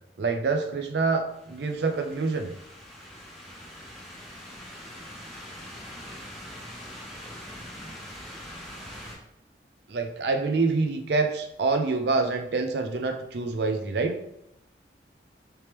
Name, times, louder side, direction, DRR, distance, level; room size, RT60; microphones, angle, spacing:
voice 1, 0.2-2.5 9.9-14.1, right 3 dB, 70° right, 6 dB, 0.5 m, -26 dB
sound 1, 1.3-9.1, equal, ahead, 0.6 m, -43 dB
3.4 x 3.0 x 3.0 m, 0.81 s
head